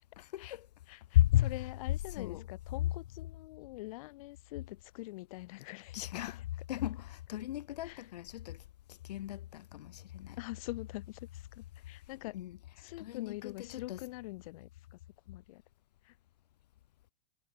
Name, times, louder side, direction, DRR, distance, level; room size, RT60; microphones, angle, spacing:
voice 1, 0.2-0.7 1.1-1.5 2.1-2.5 5.9-6.4 6.7-8.6 8.9-10.4 12.3-12.6 13.0-14.0, left 13 dB, 80° left, 2.1 m, -33 dB
voice 2, 0.9-6.2 7.8-8.1 10.3-12.4 12.8-15.0 15.3-15.6 16.0-16.2, left 21 dB, 60° left, 2.4 m, -45 dB
supercardioid pair, 145°, 20 cm